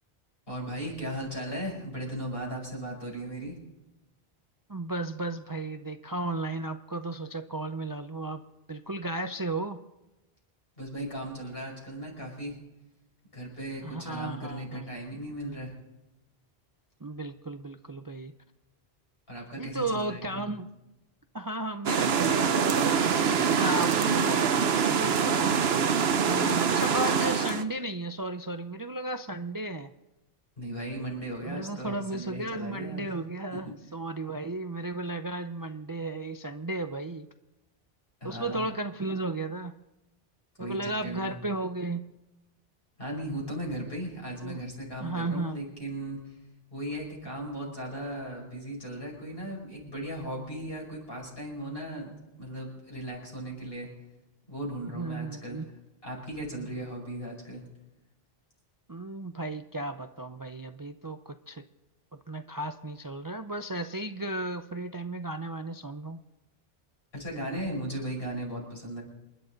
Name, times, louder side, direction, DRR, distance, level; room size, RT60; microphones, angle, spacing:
voice 1, 0.5-3.6 10.8-12.6 13.3-15.7 19.3-20.6 30.6-33.1 33.5-33.7 38.2-38.7 40.6-41.3 43.0-46.4 46.7-52.1 52.4-53.9 54.5-55.6 56.0-57.6 67.1-69.0, right 1 dB, 70° left, -2 dB, 6.0 m, -37 dB
voice 2, 4.7-9.8 13.8-14.9 17.0-18.3 19.6-20.7 21.3-25.6 26.2-29.9 31.4-37.3 38.2-39.7 40.6-42.0 44.4-44.6 45.0-45.6 54.9-55.7 58.9-61.6 62.1-66.2, right 2 dB, 30° right, 8 dB, 0.5 m, -34 dB
sound 1, 21.9-27.6, right 6 dB, 80° right, 1.1 m, -24 dB
28.0 x 11.5 x 4.0 m, 1.0 s
omnidirectional pair, 1.0 m